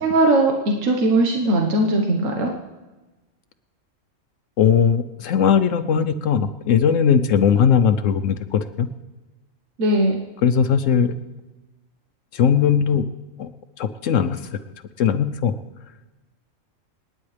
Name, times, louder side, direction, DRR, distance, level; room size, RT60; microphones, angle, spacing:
voice 1, 0.0-2.5 9.8-10.2, right 1 dB, 75° right, 2 dB, 1.6 m, -19 dB
voice 2, 4.6-8.9 10.4-11.1 12.3-13.0 13.4-13.5 13.8-14.6 15.0-15.5, left 7 dB, 75° left, 10 dB, 1.0 m, -19 dB
28.0 x 9.5 x 3.3 m, 1.1 s
omnidirectional pair, 1.3 m